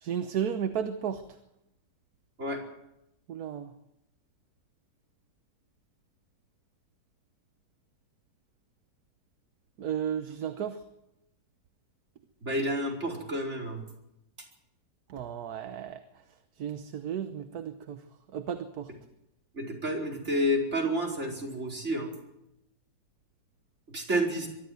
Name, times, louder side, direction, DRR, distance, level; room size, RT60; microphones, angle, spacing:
voice 1, 0.0-1.2 3.3-3.7 9.8-10.8 15.1-16.0 16.6-18.0 18.3-18.9, right 8 dB, 60° right, 9 dB, 1.4 m, -33 dB
voice 2, 12.4-13.8 19.6-22.1 23.9-24.5, equal, 40° right, -1 dB, 5.1 m, -30 dB
23.5 x 13.0 x 9.5 m, 0.87 s
omnidirectional pair, 1.9 m